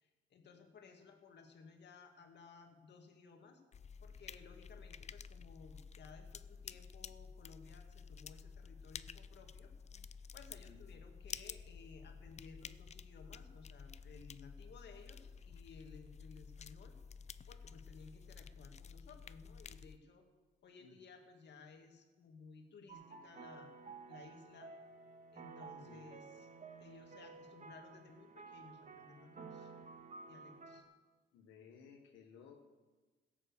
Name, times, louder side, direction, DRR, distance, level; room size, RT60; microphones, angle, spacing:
voice 1, 0.0-3.6 4.0-9.7 10.0-17.0 17.5-20.3 20.6-23.7 24.1-24.7 25.3-26.5 26.8-29.7 30.3-30.9, left 5 dB, 60° left, 4 dB, 2.1 m, -58 dB
sound 1, 3.7-20.0, left 6 dB, 35° left, 0.5 m, -52 dB
sound 2, 22.9-30.8, right 4 dB, 40° right, 1.6 m, -53 dB
voice 2, 31.3-32.6, left 7 dB, 85° left, 1 dB, 1.4 m, -58 dB
16.5 x 7.6 x 6.8 m, 1.3 s
cardioid pair, 90°, 20 cm